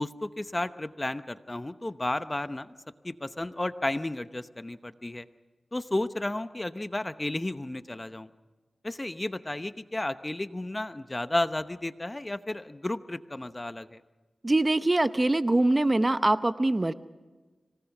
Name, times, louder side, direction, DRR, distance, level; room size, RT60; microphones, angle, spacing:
voice 1, 0.0-2.7 3.0-5.3 5.7-8.3 8.8-14.0, left 1 dB, 25° left, 11 dB, 0.9 m, -32 dB
voice 2, 14.4-16.9, right 2 dB, 30° right, 12 dB, 0.8 m, -23 dB
26.0 x 19.0 x 6.0 m, 1.2 s
cardioid pair, 45°, 0 cm